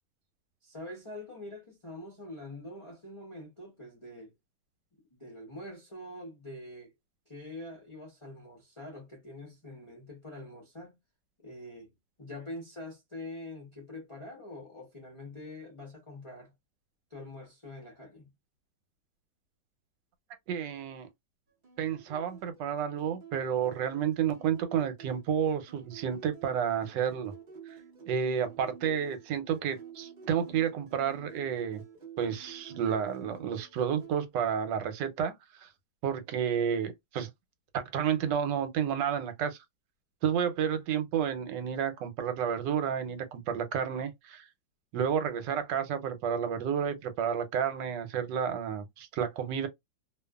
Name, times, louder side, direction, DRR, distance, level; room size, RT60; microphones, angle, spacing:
voice 1, 0.6-4.3 5.1-6.9 7.3-11.0 11.4-11.9 12.2-16.5 17.1-18.3, left 1 dB, 30° left, 0.5 m, -45 dB
voice 2, 20.5-21.1 21.8-27.3 28.1-31.8 32.2-35.3 35.6-35.7 36.0-37.3 37.7-39.6 40.2-44.4 44.9-49.7, right 8 dB, 85° right, 1.3 m, -31 dB
sound 1, 21.6-34.1, right 6 dB, 50° right, 0.6 m, -51 dB
2.6 x 2.5 x 2.3 m
omnidirectional pair, 1.9 m